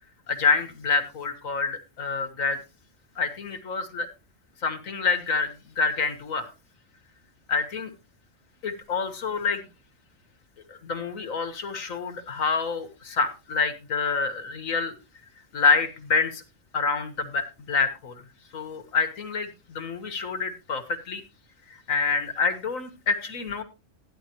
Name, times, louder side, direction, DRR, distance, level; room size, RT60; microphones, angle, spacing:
voice 1, 0.3-2.6 3.2-4.1 4.6-6.5 7.5-7.9 8.6-9.6 10.7-14.9 15.5-16.4 16.7-18.2 18.5-21.2 21.9-23.6, left 5 dB, 90° left, 8 dB, 1.7 m, -27 dB
14.0 x 10.0 x 3.0 m, 0.28 s
omnidirectional pair, 1.4 m